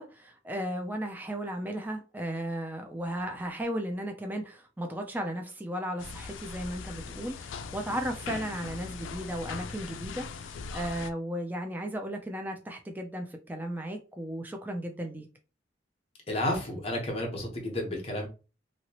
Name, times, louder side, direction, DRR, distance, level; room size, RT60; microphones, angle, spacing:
voice 1, 0.0-15.3, right 1 dB, 10° right, 0.4 m, -35 dB
sound 1, 6.0-11.1, left 5 dB, 85° left, 0.3 m, -40 dB
voice 2, 16.3-18.3, left 1 dB, 30° left, 1.1 m, -31 dB
2.9 x 2.8 x 2.9 m
head